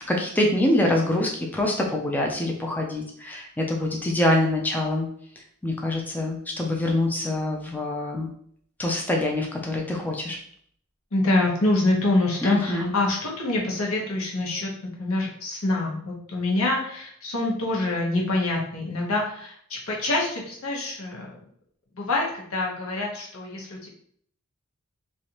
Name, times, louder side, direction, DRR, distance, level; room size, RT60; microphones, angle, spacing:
voice 1, 0.1-5.1 5.6-8.3 8.8-10.4 12.4-12.9, left 1 dB, 10° left, 0 dB, 0.4 m, -25 dB
voice 2, 11.1-21.3 21.9-23.9, left 2 dB, 85° left, -2 dB, 0.9 m, -26 dB
3.2 x 2.5 x 2.8 m, 0.62 s
head